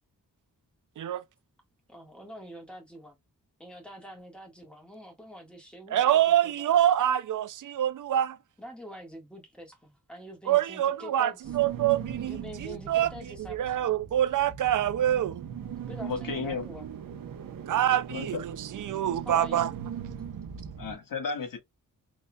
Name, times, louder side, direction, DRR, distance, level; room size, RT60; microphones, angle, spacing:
voice 1, 1.9-3.2 3.6-6.7 8.6-11.6 12.3-14.0 15.8-16.9 19.2-19.6, equal, 5° left, 1.6 m, -45 dB
voice 2, 5.9-8.4 10.5-13.1 13.5-15.4 17.7-19.7, right 11 dB, 70° right, 0.5 m, -26 dB
sound 1, 11.4-20.9, right 8 dB, 90° right, 0.8 m, -39 dB
voice 3, 16.1-16.6 18.1-18.4 20.8-21.6, left 5 dB, 80° left, 1.5 m, -33 dB
4.0 x 3.3 x 2.2 m
wide cardioid pair, 135°, 33 cm